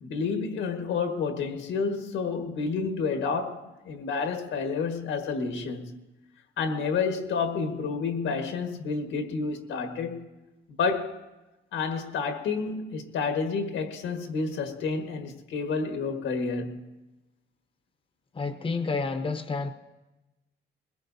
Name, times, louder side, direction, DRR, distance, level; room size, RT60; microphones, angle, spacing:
voice 1, 0.0-6.0 6.6-10.3 10.8-11.2 11.7-16.8, left 5 dB, 85° left, 1.6 m, -30 dB
voice 2, 18.3-19.7, left 4 dB, 25° left, 0.9 m, -29 dB
21.5 x 21.0 x 2.7 m
cardioid pair, 90°, 20 cm